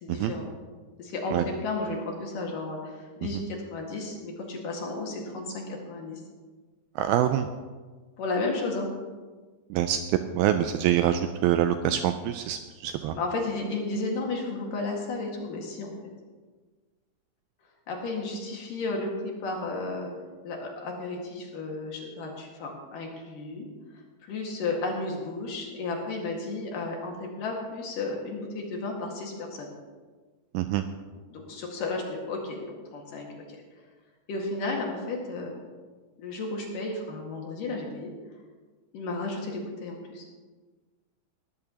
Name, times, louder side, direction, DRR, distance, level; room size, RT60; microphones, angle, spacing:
voice 1, 0.0-0.5 1.0-6.2 8.2-8.9 13.1-15.9 17.9-20.1 20.4-23.7 24.2-29.7 31.3-33.4 34.3-35.5 36.2-38.1 38.9-40.2, left 3 dB, 60° left, 0 dB, 3.2 m, -33 dB
voice 2, 7.0-7.5 9.7-10.0 10.3-13.2 30.5-30.8, right 11 dB, 85° right, 9 dB, 2.2 m, -25 dB
19.5 x 13.5 x 2.9 m, 1.4 s
omnidirectional pair, 4.8 m